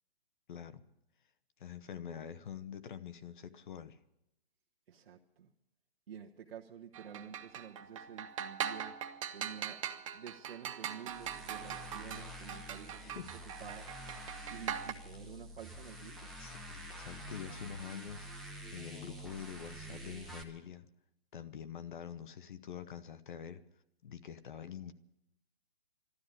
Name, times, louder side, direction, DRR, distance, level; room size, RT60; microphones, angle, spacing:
voice 1, 0.5-0.8 1.6-4.0 13.0-13.7 16.4-18.3 18.7-20.9 21.3-23.6 24.0-24.9, left 8 dB, 55° left, 12 dB, 1.0 m, -46 dB
voice 2, 4.9-5.5 6.1-9.0 9.3-9.8 10.1-13.1 13.4-13.9 14.5-16.3, right 8 dB, 65° right, -1 dB, 1.2 m, -50 dB
sound 1, 6.9-14.9, right 9 dB, 35° right, 0.6 m, -41 dB
sound 2, 11.1-20.4, equal, ahead, 0.8 m, -48 dB
12.5 x 11.5 x 9.7 m, 0.86 s
hypercardioid pair, 155°, 30 cm